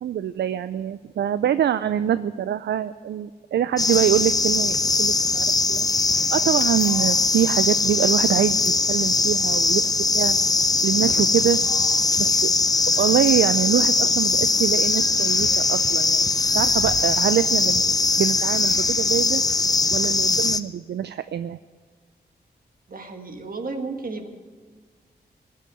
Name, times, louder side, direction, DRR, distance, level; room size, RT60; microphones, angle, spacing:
voice 1, 0.0-5.9 6.3-10.3 10.8-11.6 12.2-12.5 13.0-16.3 16.5-17.8 18.2-19.4 19.9-21.6, right 10 dB, 75° right, 13 dB, 0.4 m, -24 dB
sound 1, 3.8-20.6, left 3 dB, 20° left, 0.6 m, -21 dB
voice 2, 22.9-24.3, right 3 dB, 55° right, 5 dB, 1.7 m, -33 dB
17.5 x 6.5 x 9.7 m, 1.5 s
cardioid pair, 65°, 18 cm